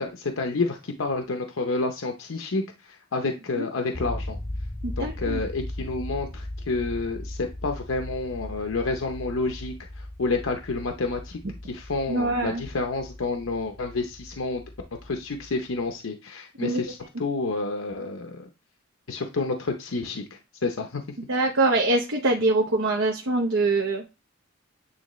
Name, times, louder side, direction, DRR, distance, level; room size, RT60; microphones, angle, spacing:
voice 1, 0.0-4.4 5.0-14.6 15.0-18.5 19.1-21.0, left 3 dB, 85° left, 4 dB, 0.7 m, -29 dB
sound 1, 3.9-15.9, left 1 dB, 25° left, 0.6 m, -38 dB
voice 2, 4.8-5.4 12.1-12.6 16.6-16.8 21.3-24.0, right 2 dB, 80° right, 1 dB, 0.9 m, -24 dB
9.0 x 3.5 x 3.1 m, 0.28 s
head